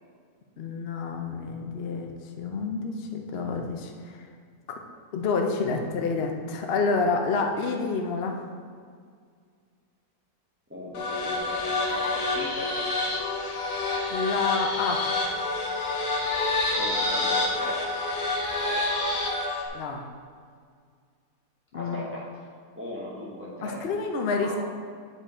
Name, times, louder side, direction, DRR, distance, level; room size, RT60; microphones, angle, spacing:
voice 1, 0.6-4.2 4.7-4.8 5.1-8.5 14.1-15.1 19.7-20.1 21.7-22.1 23.6-24.6, left 4 dB, 55° left, 3 dB, 0.7 m, -28 dB
voice 2, 10.7-12.8 16.8-17.9 18.6-18.9 21.7-22.3 22.8-23.8 24.4-24.6, left 1 dB, 10° right, -6 dB, 1.0 m, -38 dB
sound 1, 10.9-19.7, left 2 dB, 80° left, 1.7 m, -28 dB
8.1 x 5.2 x 4.3 m, 2.1 s
omnidirectional pair, 1.7 m